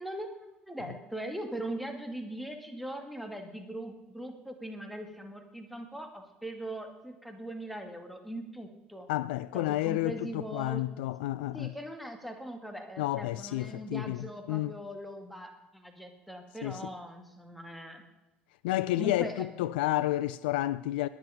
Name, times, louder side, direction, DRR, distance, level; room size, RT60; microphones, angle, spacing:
voice 1, 0.0-9.1 9.5-10.8 11.5-18.0 19.0-19.7, right 1 dB, ahead, 2.3 m, -41 dB
voice 2, 9.1-11.7 13.0-14.7 16.6-16.8 18.6-21.1, left 16 dB, 65° left, 0.4 m, -30 dB
21.0 x 8.0 x 5.1 m
figure-of-eight pair, 60°, 6 cm